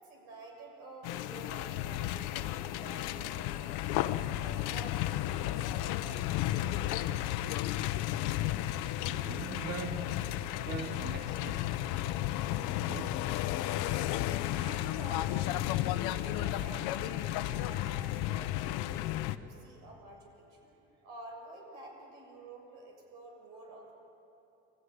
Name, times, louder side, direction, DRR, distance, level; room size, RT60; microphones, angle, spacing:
voice 1, 0.0-4.0 4.4-7.6 14.5-19.0 19.4-23.9, right 2 dB, 85° right, 0 dB, 6.9 m, -50 dB
sound 1, 1.0-19.4, left 14 dB, 85° left, 0.9 m, -33 dB
voice 2, 9.0-11.7 12.7-13.3, right 6 dB, 35° right, 5 dB, 1.2 m, -43 dB
26.5 x 14.5 x 9.6 m, 2.9 s
cardioid pair, 175°, 30 cm